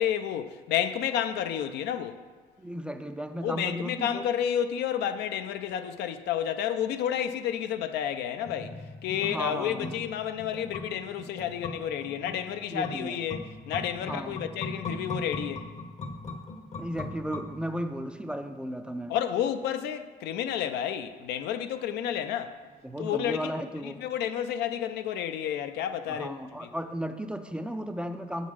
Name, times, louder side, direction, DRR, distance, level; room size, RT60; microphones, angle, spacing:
voice 1, 0.0-2.2 3.4-8.8 9.0-15.6 19.1-22.5 23.0-23.5 23.8-26.3 26.6-26.7, left 9 dB, 80° left, 0.5 m, -30 dB
voice 2, 2.6-4.3 9.2-9.9 12.7-13.2 14.0-14.4 16.8-19.2 22.8-24.1 26.1-28.5, equal, 5° right, 0.4 m, -35 dB
sound 1, 8.4-18.0 18.3-18.4, left 2 dB, 40° left, 0.9 m, -39 dB
7.2 x 4.0 x 6.2 m
cardioid pair, 110°, 17 cm